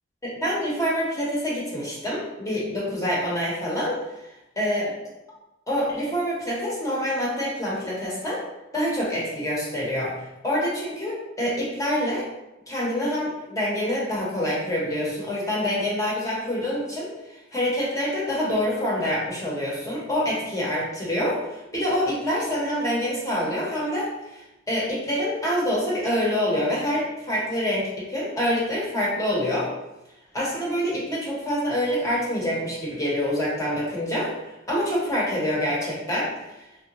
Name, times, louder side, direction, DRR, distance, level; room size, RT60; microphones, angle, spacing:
voice 1, 0.2-4.0 4.6-4.9 5.7-8.4 8.7-12.3 12.7-29.7 30.3-34.3 34.7-36.3, equal, 15° left, -5 dB, 0.8 m, -26 dB
3.5 x 2.2 x 2.8 m, 0.94 s
head